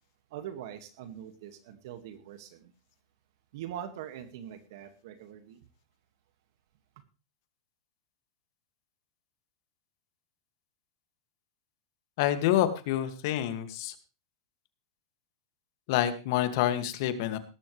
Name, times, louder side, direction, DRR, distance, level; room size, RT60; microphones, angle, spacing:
voice 1, 0.3-2.7 3.5-5.6, right 10 dB, 60° right, 8 dB, 2.0 m, -43 dB
voice 2, 12.2-13.9 15.9-17.4, left 12 dB, 55° left, 9 dB, 2.2 m, -27 dB
18.0 x 13.0 x 3.3 m, 0.31 s
supercardioid pair, 140°, 2 cm